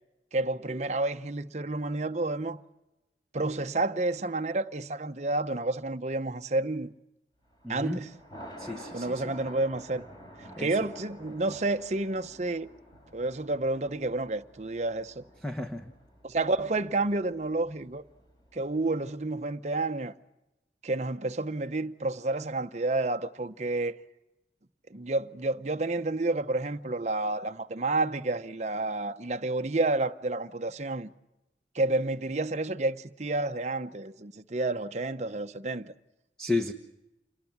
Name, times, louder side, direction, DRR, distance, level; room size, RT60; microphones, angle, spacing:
voice 1, 0.3-2.6 3.3-6.9 7.7-8.1 8.9-10.1 10.4-12.7 13.1-15.2 16.2-18.0 18.5-20.1 20.8-24.0 24.9-31.1 31.7-35.9, right 2 dB, 40° right, 0.8 m, -30 dB
Thunder, 7.5-18.8, equal, 25° left, 4.9 m, -50 dB
voice 2, 7.6-8.0 8.6-9.3 10.6-10.8 15.4-15.9 36.4-36.7, left 2 dB, 5° left, 1.1 m, -32 dB
27.5 x 20.0 x 7.2 m
head